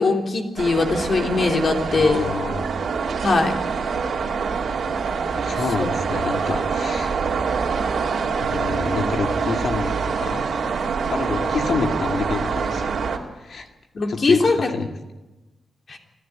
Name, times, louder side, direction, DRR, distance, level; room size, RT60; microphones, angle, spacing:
voice 1, 0.0-2.2 3.2-3.5 5.8-5.9 13.9-14.7 15.9-16.0, left 3 dB, 50° left, 2 dB, 3.5 m, -20 dB
sound 1, 0.6-13.2, right 5 dB, 75° right, 2.7 m, -25 dB
voice 2, 1.9-2.7 5.3-7.1 8.4-10.5 11.1-12.9 13.4-13.7 14.1-14.9, left 4 dB, 65° left, 4 dB, 2.3 m, -27 dB
25.5 x 14.5 x 9.6 m, 1.1 s
cardioid pair, 100°, 0 cm